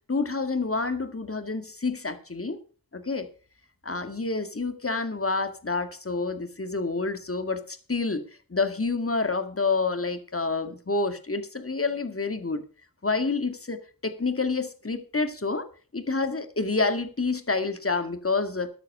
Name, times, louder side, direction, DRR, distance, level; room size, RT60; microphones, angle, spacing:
voice 1, 0.1-2.6 2.9-3.3 3.8-8.2 8.5-12.6 13.0-13.8 14.0-15.7 15.9-18.7, left 3 dB, 40° left, 9 dB, 2.1 m, -28 dB
14.0 x 9.9 x 5.6 m, 0.39 s
cardioid pair, 45°, 35 cm